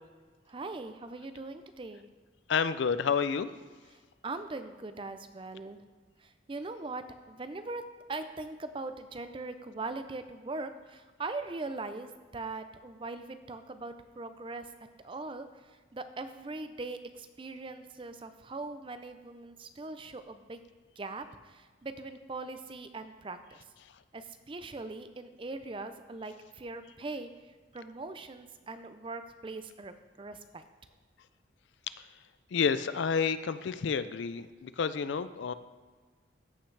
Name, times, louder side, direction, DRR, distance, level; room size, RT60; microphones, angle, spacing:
voice 1, 0.5-2.0 4.2-5.8 6.2-14.7 15.0-20.6 21.0-23.6 24.1-27.3 27.7-30.6, right 3 dB, 25° right, 10 dB, 0.4 m, -41 dB
voice 2, 2.5-3.5 32.5-35.5, left 6 dB, 65° left, 13 dB, 0.4 m, -29 dB
14.5 x 5.8 x 3.3 m, 1.4 s
head